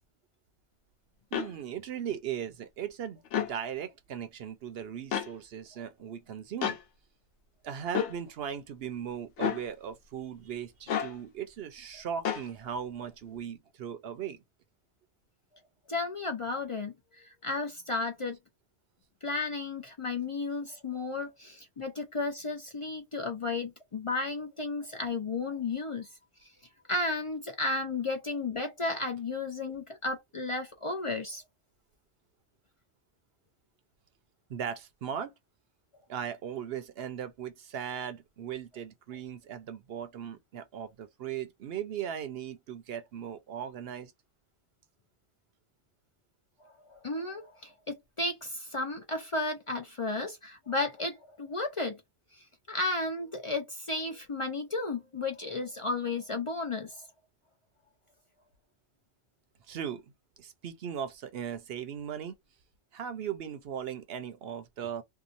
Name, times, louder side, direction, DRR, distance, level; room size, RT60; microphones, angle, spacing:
sound 1, 1.3-1.5 3.3-3.5 5.1-5.3 6.6-6.8 7.9-8.2 9.4-9.6 10.9-11.1 12.3-12.5, left 8 dB, 90° left, 1.0 m, -30 dB
voice 1, 1.3-6.8 7.6-14.4 34.5-35.3 36.1-44.1 59.7-60.1 60.4-62.3 62.9-65.0, right 8 dB, 65° right, 0.7 m, -38 dB
voice 2, 15.9-18.4 19.2-26.1 26.4-26.5 26.9-31.4 46.6-52.0 52.3-57.1, left 3 dB, 45° left, 0.4 m, -33 dB
2.8 x 2.2 x 2.4 m
omnidirectional pair, 1.2 m